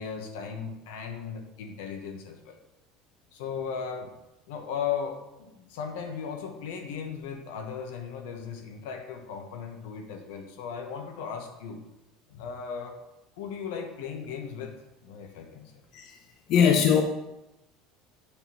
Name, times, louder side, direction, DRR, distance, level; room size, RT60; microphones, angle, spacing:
voice 1, 0.0-2.6 3.3-4.2 4.5-11.8 12.3-13.0 13.4-14.7 15.0-15.8, left 6 dB, 90° left, 5 dB, 1.1 m, -37 dB
voice 2, 16.5-17.0, left 7 dB, 55° left, 4 dB, 0.6 m, -20 dB
7.1 x 3.7 x 5.8 m, 0.96 s
cardioid pair, 140°, 0 cm